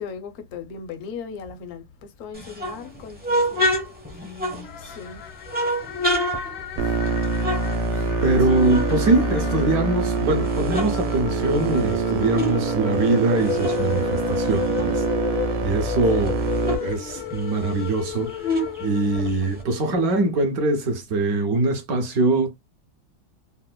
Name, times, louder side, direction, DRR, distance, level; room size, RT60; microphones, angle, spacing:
voice 1, 0.0-3.8 4.8-5.2 6.8-7.0 7.9-8.1, left 6 dB, 60° left, 0.9 m, -38 dB
sound 1, 2.3-5.0 5.5-8.4 8.6-10.0 10.4-12.6 12.9-15.5 15.8-15.9 16.2-19.6, equal, 10° right, 0.4 m, -29 dB
sound 2, 4.6-19.9, left 11 dB, 75° left, 1.4 m, -33 dB
sound 3, 6.8-16.8, right 4 dB, 85° right, 1.4 m, -25 dB
voice 2, 8.2-16.4 16.8-22.5, right 2 dB, 70° right, 0.9 m, -23 dB
4.2 x 2.1 x 2.2 m
omnidirectional pair, 2.2 m